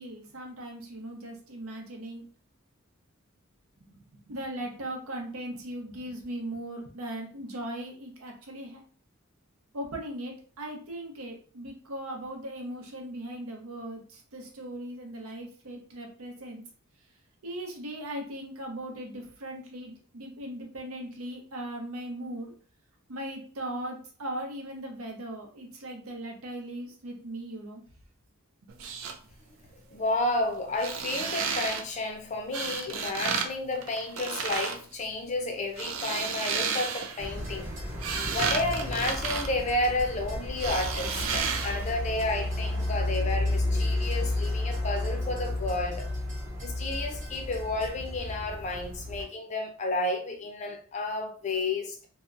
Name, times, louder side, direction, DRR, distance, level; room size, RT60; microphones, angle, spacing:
voice 1, 0.0-2.2 3.8-4.0 4.3-8.8 9.7-16.6 17.4-22.5 23.1-27.8, right 1 dB, 85° right, 0.7 m, -38 dB
sound 1, 28.7-29.1 30.7-31.8 32.5-33.5 33.8-34.8 35.6-37.2 37.7-40.2 40.6-41.9 42.2-42.3, right 6 dB, 65° right, 0.4 m, -32 dB
voice 2, 29.9-37.7 38.3-46.1 46.6-52.1, left 2 dB, 35° left, 0.4 m, -31 dB
sound 2, 37.2-49.2, left 1 dB, 35° right, 0.9 m, -32 dB
2.7 x 2.1 x 2.4 m
head